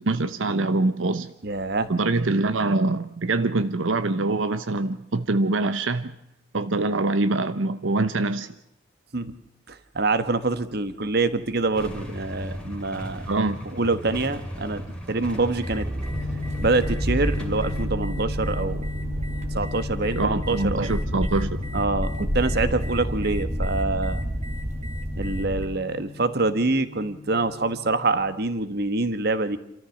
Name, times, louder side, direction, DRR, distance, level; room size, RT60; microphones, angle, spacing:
voice 1, 0.0-1.3 1.9-6.1 6.5-8.5 13.3-13.6 20.2-21.5, right 2 dB, 85° right, 12 dB, 0.8 m, -24 dB
voice 2, 1.4-1.9 9.1-9.3 9.7-13.3 13.7-14.8 15.1-15.9 16.6-18.9 19.5-20.9 21.7-24.2 25.2-29.6, right 3 dB, 55° right, 12 dB, 1.4 m, -25 dB
Motorcycle / Engine starting / Idling, 11.7-17.9, equal, 5° left, 2.9 m, -36 dB
sound 1, 15.6-25.6, right 1 dB, 35° right, 2.0 m, -29 dB
sound 2, 16.1-28.4, left 4 dB, 50° left, 1.4 m, -37 dB
28.0 x 14.0 x 7.2 m, 0.85 s
head